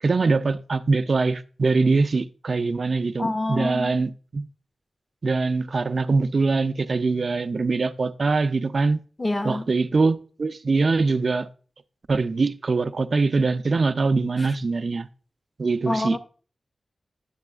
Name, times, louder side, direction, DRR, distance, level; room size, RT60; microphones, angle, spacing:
voice 1, 0.0-4.4 5.2-9.0 9.4-11.5 12.1-15.1 15.6-16.2, right 3 dB, 60° right, 0.3 m, -23 dB
voice 2, 3.2-4.0 9.2-9.7 15.8-16.2, left 2 dB, 30° left, 0.6 m, -26 dB
9.6 x 6.1 x 2.3 m
cardioid pair, 65°, 0 cm